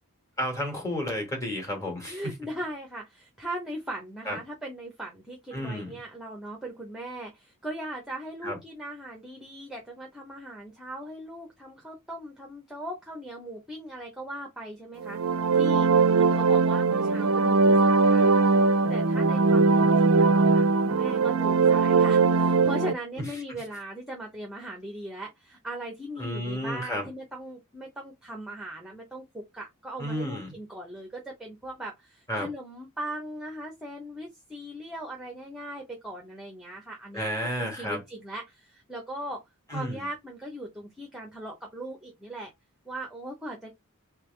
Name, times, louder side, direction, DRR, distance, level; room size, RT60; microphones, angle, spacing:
voice 1, 0.4-2.2 4.2-4.4 5.5-6.0 8.4-8.6 23.2-23.6 26.2-27.1 30.0-30.5 32.3-32.5 37.1-38.0 39.7-40.0, equal, 15° left, 1.7 m, -32 dB
voice 2, 2.0-15.2 15.5-37.3 37.6-39.4 39.7-42.5 42.8-43.8, right 1 dB, 5° right, 0.7 m, -39 dB
sound 1, 15.0-22.9, right 4 dB, 65° right, 0.4 m, -21 dB
3.4 x 3.3 x 3.2 m
head